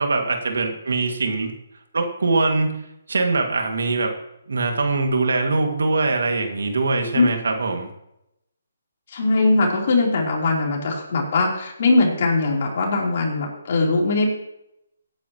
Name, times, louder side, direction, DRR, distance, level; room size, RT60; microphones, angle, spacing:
voice 1, 0.0-1.5 1.9-2.8 3.1-4.1 4.5-7.9, right 3 dB, 80° right, 4 dB, 2.2 m, -22 dB
voice 2, 9.1-14.4, left 3 dB, 50° left, -2 dB, 3.7 m, -20 dB
17.0 x 9.8 x 3.1 m, 0.82 s
hypercardioid pair, 160°, 0 cm